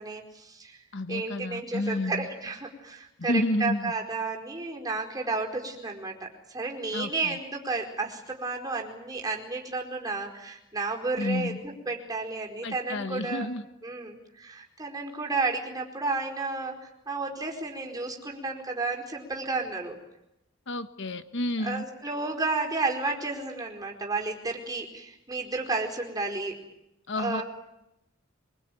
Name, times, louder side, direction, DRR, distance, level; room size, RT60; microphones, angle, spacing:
voice 1, 0.0-0.8 1.1-13.5 13.8-20.0 21.6-26.5 27.2-27.4, right 3 dB, 20° right, 1 dB, 4.7 m, -32 dB
voice 2, 0.9-2.3 3.2-3.9 6.9-7.4 11.2-11.6 12.6-13.6 20.7-21.8 27.1-27.4, left 1 dB, 60° left, 10 dB, 1.3 m, -30 dB
24.5 x 23.0 x 9.3 m, 0.87 s
head